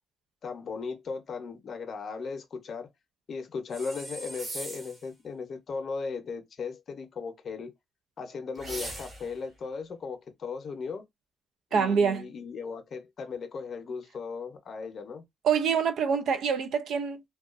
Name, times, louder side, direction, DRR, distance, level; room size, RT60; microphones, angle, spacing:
voice 1, 0.4-2.9 3.3-7.7 8.2-11.0 11.7-15.2, left 5 dB, 50° left, 0.6 m, -37 dB
sound 1, 3.7-5.1 8.6-9.4, right 1 dB, 40° right, 1.0 m, -40 dB
voice 2, 11.7-12.2 15.4-17.2, right 6 dB, 70° right, 0.3 m, -25 dB
2.2 x 2.2 x 2.4 m
cardioid pair, 90°, 0 cm